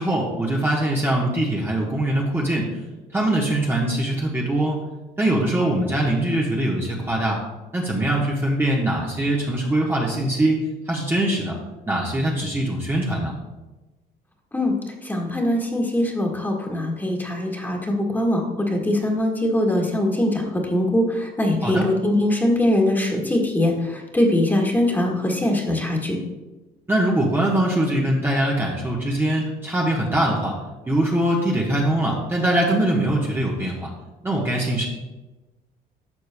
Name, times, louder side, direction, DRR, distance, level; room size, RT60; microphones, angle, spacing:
voice 1, 0.0-2.7 3.1-4.8 5.2-7.4 7.7-10.6 10.9-11.6 11.9-13.3 21.6-21.9 26.9-30.5 30.9-33.9 34.2-34.9, right 1 dB, 15° right, -3 dB, 1.1 m, -22 dB
voice 2, 15.0-26.2, left 1 dB, 10° left, -1 dB, 1.7 m, -22 dB
12.0 x 6.5 x 2.2 m, 1.1 s
cardioid pair, 110°, 17 cm